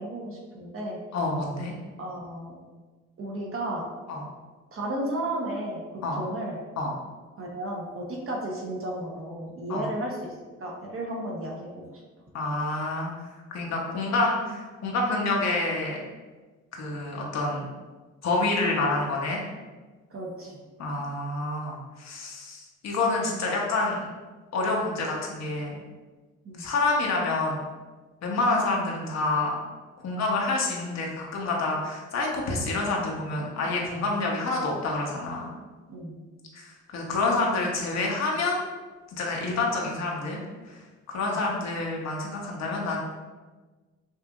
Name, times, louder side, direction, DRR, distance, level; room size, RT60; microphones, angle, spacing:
voice 1, 0.0-1.0 2.0-2.6 3.2-3.9 4.7-6.6 7.4-12.0 20.1-20.6 26.4-26.6 33.6-34.0 35.9-36.2 41.2-41.4, right 1 dB, 45° right, -2 dB, 1.1 m, -34 dB
voice 2, 1.1-1.7 4.1-4.2 6.0-6.2 6.8-6.9 9.7-9.9 12.3-16.0 16.7-17.7 18.2-19.4 20.8-24.1 24.5-25.8 26.6-27.6 28.2-29.5 30.0-35.5 36.5-38.6 39.1-40.4 40.7-43.0, left 2 dB, 60° left, -1 dB, 1.0 m, -28 dB
5.4 x 2.6 x 2.4 m, 1.3 s
cardioid pair, 90°, 30 cm